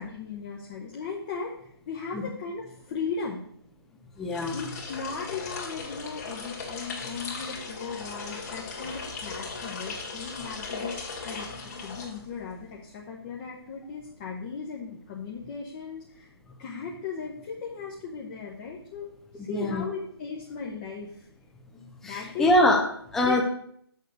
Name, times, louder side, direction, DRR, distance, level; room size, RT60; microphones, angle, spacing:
voice 1, 0.0-3.4 4.5-11.5 11.7-16.3 16.6-21.3 22.0-22.5 23.2-23.4, left 5 dB, 20° left, -2 dB, 0.9 m, -37 dB
sound 1, 4.2-12.6, left 4 dB, 35° left, 2.1 m, -38 dB
voice 2, 4.2-4.6 19.4-19.8 22.0-22.9 23.1-23.4, left 1 dB, 5° left, 1 dB, 0.5 m, -23 dB
6.6 x 6.4 x 6.5 m, 0.66 s
figure-of-eight pair, 150°, 13 cm